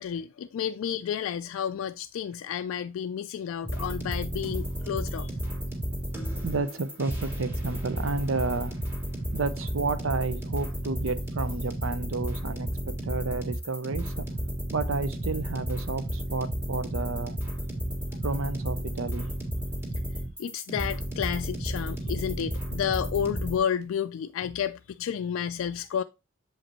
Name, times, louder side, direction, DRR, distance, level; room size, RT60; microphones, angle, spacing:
voice 1, 0.0-5.3 20.4-26.0, left 8 dB, 80° left, 0.3 m, -31 dB
sound 1, 3.6-23.6, equal, 10° right, 1.9 m, -32 dB
voice 2, 6.4-8.7 9.3-14.3 14.7-17.4 18.2-19.3, right 3 dB, 75° right, 0.6 m, -31 dB
7.3 x 5.1 x 3.0 m
head